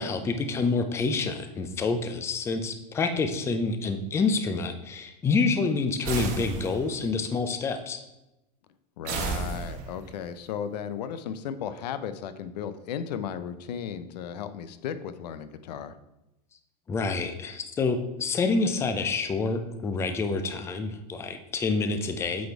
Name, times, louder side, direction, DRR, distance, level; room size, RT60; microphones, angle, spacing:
voice 1, 0.0-8.0 16.9-22.5, left 4 dB, 10° left, 8 dB, 0.5 m, -27 dB
sound 1, 6.0-7.1 9.0-10.1, right 5 dB, 40° right, 1.3 m, -32 dB
voice 2, 9.0-15.9, left 8 dB, 75° left, 12 dB, 0.7 m, -35 dB
8.4 x 4.2 x 4.6 m, 0.94 s
supercardioid pair, 145°, 21 cm